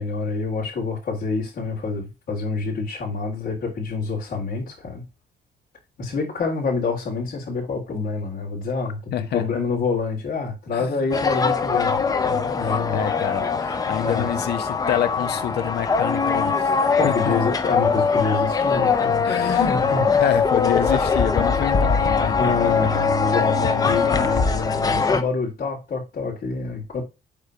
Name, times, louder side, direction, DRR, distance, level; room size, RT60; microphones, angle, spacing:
voice 1, 0.0-5.0 6.0-13.0 14.0-14.3 17.0-19.2 19.6-20.2 22.4-27.0, left 4 dB, 55° left, 3.7 m, -27 dB
voice 2, 9.1-9.4 10.7-11.1 12.6-17.4 19.2-19.8 20.2-22.6 23.9-24.0, left 10 dB, 70° left, 1.1 m, -27 dB
sound 1, 11.1-25.2, left 5 dB, 20° left, 0.7 m, -22 dB
8.9 x 3.5 x 5.7 m
cardioid pair, 170°, 17 cm